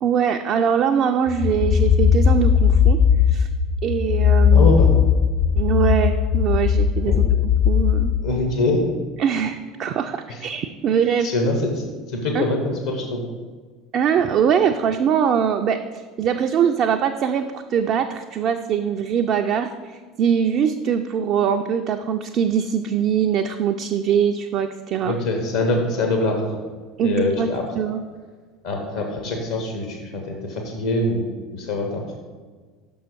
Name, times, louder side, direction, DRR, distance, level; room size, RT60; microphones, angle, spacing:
voice 1, 0.0-3.0 3.3-3.5 3.8-4.7 5.5-7.1 7.7-8.1 9.2-11.3 12.3-12.4 13.9-15.8 16.2-25.1 27.0-27.5 27.8-28.0, right 8 dB, 45° right, 5 dB, 0.3 m, -22 dB
sound 1, 1.3-8.1, left 7 dB, 45° left, 0.5 m, -18 dB
voice 2, 4.5-4.9 7.0-7.3 8.2-8.8 10.3-10.5 11.2-13.2 25.0-26.6 27.0-27.8 28.6-31.2 31.5-32.2, left 2 dB, 70° left, 2 dB, 0.9 m, -24 dB
6.0 x 5.4 x 4.6 m, 1.4 s
figure-of-eight pair, 65°, 0 cm